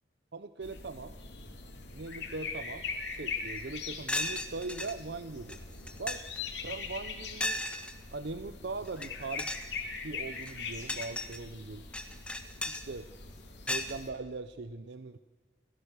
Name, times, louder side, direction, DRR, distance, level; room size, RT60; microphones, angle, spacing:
voice 1, 0.3-1.2 1.9-5.6 6.0-6.2 6.6-7.6 8.1-9.6 9.9-11.8 12.7-13.1 13.7-15.2, right 3 dB, 70° right, 11 dB, 0.7 m, -40 dB
sound 1, 0.6-14.1, left 5 dB, 75° left, 3.3 m, -42 dB
sound 2, 3.6-3.7 4.1-4.9 5.5-5.6 5.9-6.4 7.4-7.9 8.9-9.1 9.4-9.7 10.3-11.4 11.9-12.8 13.7-13.9, left 1 dB, 5° left, 1.3 m, -35 dB
30.0 x 16.5 x 6.6 m, 1.3 s
head